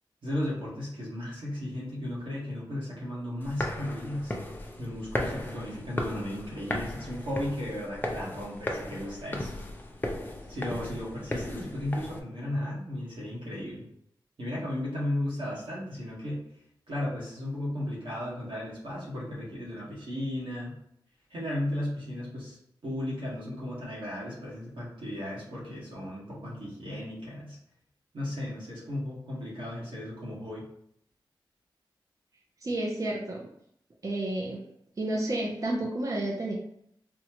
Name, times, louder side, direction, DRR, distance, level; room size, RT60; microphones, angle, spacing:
voice 1, 0.2-4.3 4.8-9.5 10.5-13.8 14.4-16.5 16.9-20.8 21.3-27.6 28.1-30.6, left 1 dB, 85° right, -5 dB, 1.4 m, -35 dB
sound 1, 3.4-12.2, left 1 dB, 20° left, 0.5 m, -36 dB
voice 2, 32.6-33.5 34.0-34.6 35.0-36.5, right 1 dB, 40° right, -2 dB, 0.6 m, -30 dB
4.1 x 2.3 x 2.9 m, 0.72 s
wide cardioid pair, 90°, 8 cm